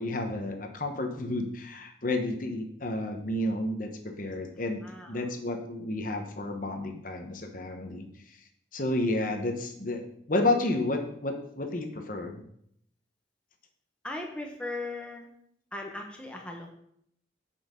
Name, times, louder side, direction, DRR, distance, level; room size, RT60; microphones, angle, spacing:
voice 1, 0.0-8.4 8.7-10.0 10.3-12.4, left 2 dB, 45° left, 4 dB, 1.1 m, -31 dB
voice 2, 4.8-5.3 14.0-15.3 15.7-16.7, left 2 dB, 5° left, 0 dB, 1.1 m, -38 dB
8.8 x 5.7 x 5.2 m, 0.71 s
head